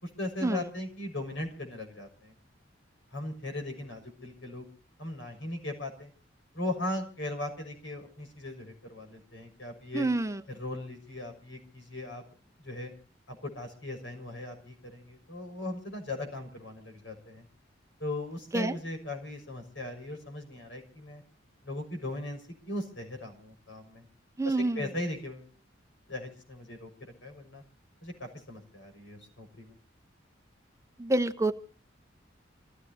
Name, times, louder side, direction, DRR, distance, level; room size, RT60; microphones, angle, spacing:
voice 1, 0.0-2.3 3.1-4.7 5.0-6.1 6.5-10.1 10.5-12.2 12.6-12.9 13.3-17.4 18.0-21.2 21.6-24.0 24.4-25.5 26.1-27.6 28.0-29.8, left 1 dB, 75° left, 4 dB, 6.4 m, -38 dB
voice 2, 9.9-10.4 18.5-18.8 24.4-24.8 31.0-31.5, right 2 dB, 15° right, 7 dB, 0.8 m, -27 dB
28.5 x 15.5 x 2.8 m, 0.38 s
head